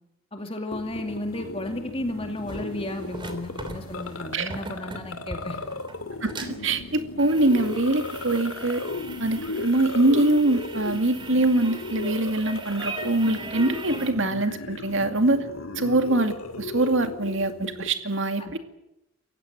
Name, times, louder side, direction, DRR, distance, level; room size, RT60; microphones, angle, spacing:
voice 1, 0.3-5.6 18.4-18.5, left 1 dB, 25° left, 4 dB, 2.5 m, -33 dB
sound 1, 0.7-17.9, left 2 dB, 75° left, 2.3 m, -36 dB
sound 2, 2.4-14.1, right 2 dB, 25° right, 3.1 m, -40 dB
voice 2, 6.2-8.8 9.2-15.4 15.8-18.6, right 2 dB, 60° right, 7 dB, 2.3 m, -23 dB
28.5 x 16.0 x 9.2 m, 0.88 s
head